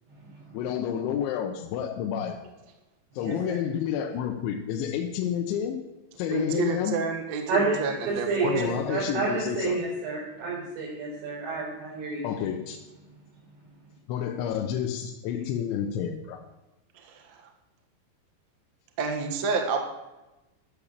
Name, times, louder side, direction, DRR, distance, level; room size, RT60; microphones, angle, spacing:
voice 1, 0.5-2.4 3.2-5.8 6.2-7.0 8.4-9.8 12.2-12.8 14.1-16.4, left 8 dB, 90° left, 4 dB, 3.3 m, -30 dB
voice 2, 3.2-3.6 7.5-7.8 8.1-12.3, right 3 dB, 85° right, -7 dB, 7.2 m, -29 dB
voice 3, 6.3-8.7 17.0-17.4 19.0-19.8, right 4 dB, 65° right, 3 dB, 1.8 m, -29 dB
13.0 x 7.3 x 6.7 m, 1.0 s
omnidirectional pair, 5.2 m